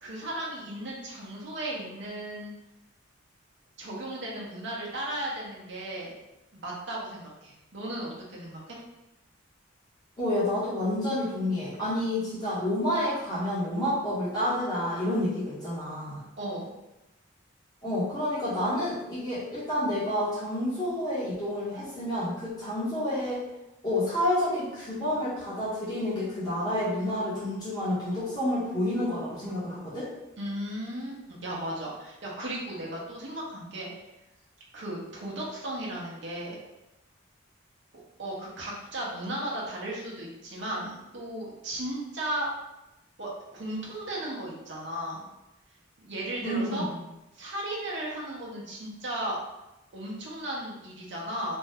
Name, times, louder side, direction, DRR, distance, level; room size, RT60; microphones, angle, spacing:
voice 1, 0.0-2.5 3.8-6.1 6.5-8.8 16.4-16.7 30.4-33.9 34.7-36.6 38.2-42.5 43.2-45.3 46.0-46.9 47.3-49.4 49.9-51.6, right 1 dB, 60° right, -4 dB, 0.8 m, -35 dB
voice 2, 10.2-16.2 17.8-23.4 23.8-30.1 46.4-47.0, left 1 dB, 20° left, -10 dB, 0.8 m, -29 dB
2.6 x 2.2 x 3.4 m, 0.96 s
head